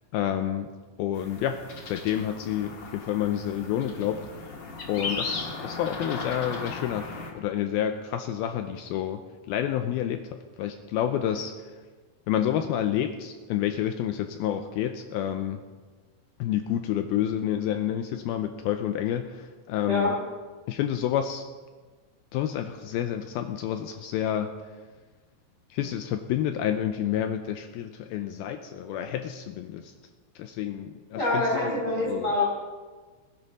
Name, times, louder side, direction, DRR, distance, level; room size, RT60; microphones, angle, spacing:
voice 1, 0.1-0.7 1.0-4.5 4.9-10.3 10.6-11.7 12.3-15.6 16.4-20.2 20.7-21.4 22.3-24.7 25.7-29.9 30.4-32.3, left 10 dB, 85° left, 7 dB, 2.2 m, -29 dB
sound 1, 1.1-7.3, left 4 dB, 60° left, 1.2 m, -37 dB
voice 2, 31.1-32.4, left 2 dB, 25° left, -5 dB, 5.1 m, -25 dB
20.5 x 10.5 x 4.1 m, 1.4 s
omnidirectional pair, 4.9 m